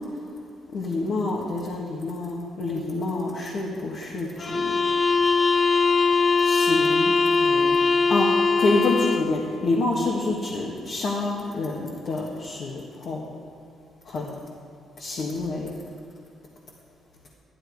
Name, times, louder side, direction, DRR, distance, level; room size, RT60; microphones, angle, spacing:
voice 1, 0.7-4.8 6.4-7.8 8.1-13.2 14.1-14.4 15.0-15.7, left 2 dB, 65° left, -3 dB, 1.6 m, -27 dB
sound 1, 4.4-9.4, left 4 dB, 30° left, 0.6 m, -21 dB
12.0 x 11.5 x 4.7 m, 2.8 s
cardioid pair, 90°, 0 cm